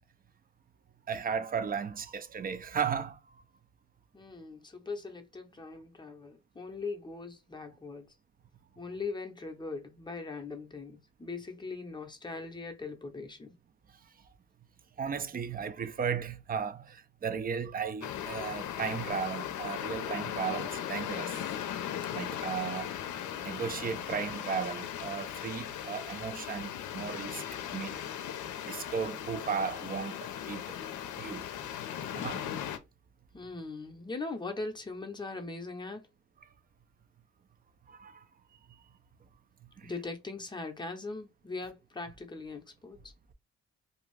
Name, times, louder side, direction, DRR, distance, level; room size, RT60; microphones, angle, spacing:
voice 1, 1.1-3.2 15.0-21.4 22.1-22.9 23.4-27.4 27.7-28.0 28.6-30.6 31.2-31.5 32.1-32.4 37.9-38.2 39.8-39.9, right 6 dB, 30° right, 0.4 m, -35 dB
voice 2, 4.1-8.1 8.8-13.5 33.3-36.0 39.8-43.1, left 3 dB, 15° left, 0.7 m, -40 dB
sound 1, 18.0-32.8, left 10 dB, 75° left, 0.6 m, -38 dB
2.6 x 2.3 x 3.1 m
cardioid pair, 90°, 30 cm